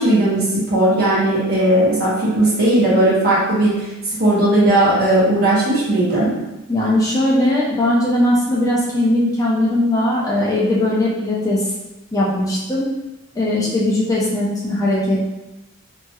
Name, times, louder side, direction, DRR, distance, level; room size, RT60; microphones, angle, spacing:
voice 1, 0.0-3.9 4.2-6.3, right 1 dB, 45° right, -8 dB, 1.1 m, -16 dB
voice 2, 6.7-11.6 12.1-12.9 13.3-15.2, left 1 dB, 15° left, -5 dB, 0.5 m, -19 dB
2.8 x 2.8 x 2.3 m, 0.99 s
head